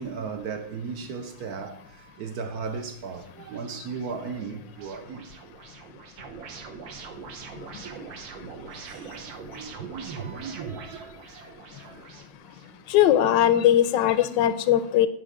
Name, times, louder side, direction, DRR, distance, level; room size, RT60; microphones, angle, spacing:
voice 1, 0.0-5.3 7.5-12.1 13.3-13.5, right 5 dB, 65° right, 1.1 m, -37 dB
sound 1, 2.8-14.3, right 5 dB, 90° right, 1.7 m, -44 dB
voice 2, 12.9-15.1, left 11 dB, 85° left, 1.3 m, -20 dB
9.0 x 5.6 x 4.9 m
omnidirectional pair, 2.0 m